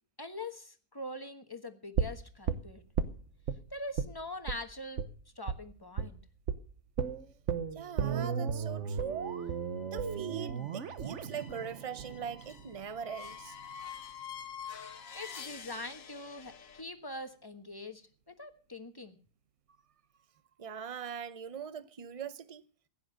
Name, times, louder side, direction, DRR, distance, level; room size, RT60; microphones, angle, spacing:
voice 1, 0.2-2.8 3.7-5.0 5.4-6.2 14.8-19.2, left 2 dB, 15° left, 1.2 m, -43 dB
sound 1, 2.0-3.6 4.0-4.2 4.5-4.6 5.0-5.1 5.5-5.6 6.0-6.2 6.5-6.6 7.0-13.0 13.3-13.4, right 7 dB, 55° right, 1.2 m, -34 dB
voice 2, 7.7-9.3 9.8-13.6 20.6-22.6, right 7 dB, 35° right, 0.6 m, -42 dB
sound 2, 9.1-16.8, left 7 dB, 60° left, 1.5 m, -48 dB
16.0 x 10.0 x 6.5 m
omnidirectional pair, 1.6 m